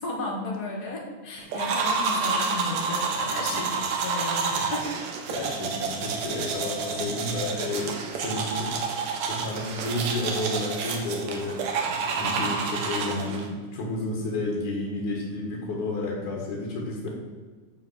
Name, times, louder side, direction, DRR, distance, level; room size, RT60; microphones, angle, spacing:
voice 1, 0.0-4.9, left 2 dB, 35° left, 0 dB, 1.9 m, -34 dB
sound 1, 1.5-13.5, right 5 dB, 70° right, 2.4 m, -29 dB
voice 2, 5.3-8.8 9.3-17.1, left 2 dB, 80° left, -2 dB, 3.5 m, -31 dB
14.0 x 4.7 x 6.4 m, 1.5 s
omnidirectional pair, 3.5 m